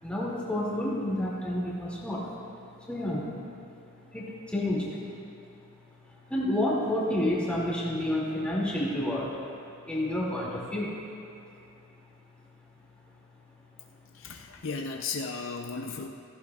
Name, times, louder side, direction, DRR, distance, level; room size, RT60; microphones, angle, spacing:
voice 1, 0.0-2.2 2.9-3.2 4.1-4.9 6.3-9.3 9.9-10.9, left 1 dB, 5° left, -6 dB, 2.3 m, -29 dB
voice 2, 14.1-16.1, left 4 dB, 60° left, 3 dB, 0.5 m, -35 dB
16.0 x 15.0 x 2.3 m, 2.8 s
head